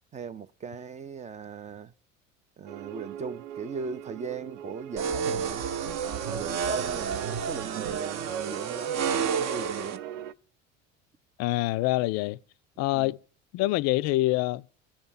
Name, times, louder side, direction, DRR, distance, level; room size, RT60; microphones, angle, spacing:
voice 1, 0.1-1.9 2.6-5.6 6.0-10.0 12.9-13.1, right 5 dB, 20° right, 0.4 m, -38 dB
sound 1, 2.7-10.3, right 11 dB, 70° right, 0.6 m, -41 dB
sound 2, 5.0-10.0, right 7 dB, 45° right, 0.8 m, -30 dB
voice 2, 11.4-12.4 12.8-13.2 13.5-14.6, left 18 dB, 45° left, 0.4 m, -25 dB
10.0 x 4.3 x 7.2 m
figure-of-eight pair, 65°, 38 cm